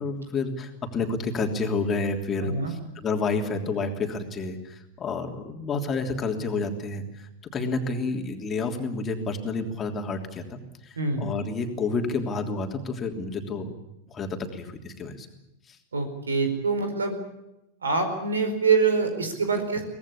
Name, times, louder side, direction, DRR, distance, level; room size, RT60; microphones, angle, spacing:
voice 1, 0.0-13.7 14.1-15.3 15.7-15.8, left 3 dB, 25° left, 3 dB, 3.2 m, -30 dB
voice 2, 2.4-2.7 11.0-11.2 15.9-17.2 17.8-19.8, right 4 dB, 75° right, 7 dB, 4.8 m, -25 dB
24.0 x 18.5 x 8.5 m, 0.90 s
figure-of-eight pair, 90°, 0 cm